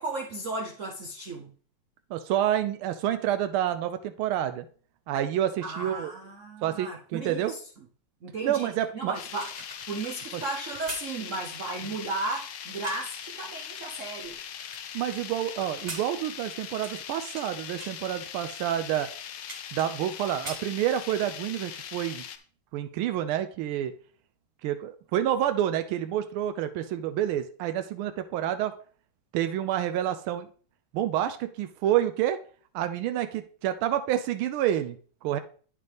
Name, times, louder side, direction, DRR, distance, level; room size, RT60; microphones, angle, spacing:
voice 1, 0.0-1.5 5.6-7.6 8.2-9.5 9.9-14.4, right 3 dB, 60° right, 0.8 m, -35 dB
voice 2, 2.1-4.7 5.1-6.1 6.6-7.5 8.4-9.1 14.9-19.1 19.7-22.2 22.7-23.9 24.6-28.7 29.3-30.5 30.9-32.4 32.7-35.0 35.2-35.4, right 11 dB, 90° right, 1.4 m, -28 dB
sound 1, 9.1-22.4, left 9 dB, 75° left, 1.5 m, -41 dB
sound 2, 9.2-13.2 13.8-15.2 15.6-17.5 17.8-18.0 18.6-18.7 19.0-20.1 20.3-21.3 21.7-21.9, right 2 dB, 30° right, 0.9 m, -43 dB
9.1 x 6.7 x 3.4 m
omnidirectional pair, 2.3 m